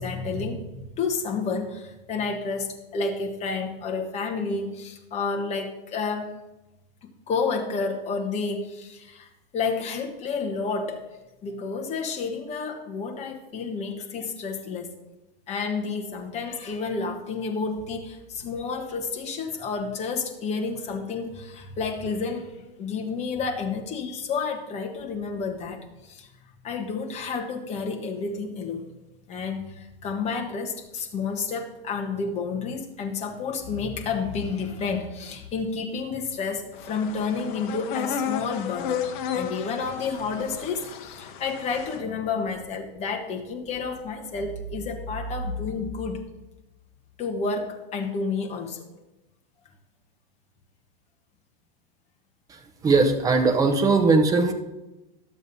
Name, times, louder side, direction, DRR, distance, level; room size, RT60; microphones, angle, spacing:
voice 1, 0.0-6.3 7.3-9.3 9.5-11.0 11.4-14.9 15.5-22.5 22.8-26.3 26.6-28.9 29.3-39.0 39.3-46.2 47.2-48.9, left 4 dB, 20° left, 2 dB, 1.1 m, -30 dB
sound 1, 36.8-42.0, left 8 dB, 55° left, 0.8 m, -33 dB
voice 2, 52.8-54.5, right 3 dB, 10° right, 4 dB, 0.6 m, -19 dB
12.5 x 7.3 x 2.7 m, 1.0 s
supercardioid pair, 145°, 29 cm